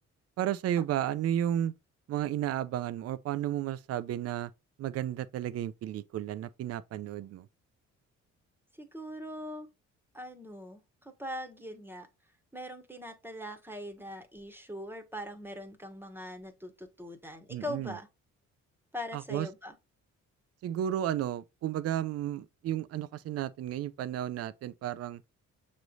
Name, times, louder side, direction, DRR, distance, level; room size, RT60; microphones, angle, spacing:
voice 1, 0.4-1.7 2.1-4.5 4.8-7.5 17.5-17.9 19.1-19.5 20.6-25.2, right 11 dB, 55° right, 0.5 m, -33 dB
voice 2, 8.8-9.7 10.1-12.1 12.5-18.1 18.9-19.7, equal, 5° right, 1.2 m, -41 dB
6.7 x 3.2 x 2.4 m
cardioid pair, 90°, 30 cm